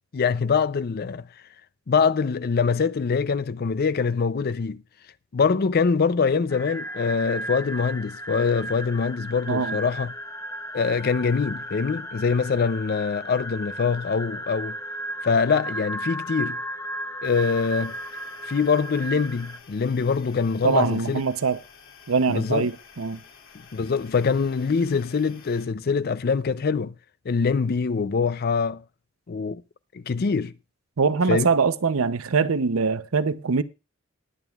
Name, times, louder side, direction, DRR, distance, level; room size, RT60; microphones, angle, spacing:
voice 1, 0.1-1.2 1.9-4.8 5.3-10.1 10.7-14.8 15.2-16.6 17.2-18.0 18.4-21.2 22.3-22.7 23.7-26.9 27.3-28.8 29.3-29.6 29.9-30.5 31.3-31.5, left 5 dB, 50° left, 0.5 m, -24 dB
sound 1, 6.5-19.6, right 1 dB, 15° left, 0.7 m, -35 dB
sound 2, 17.2-25.6, left 6 dB, 75° left, 2.7 m, -50 dB
voice 2, 20.6-21.6 22.1-23.2 31.0-33.6, right 5 dB, 90° right, 0.7 m, -23 dB
20.0 x 9.0 x 2.4 m
head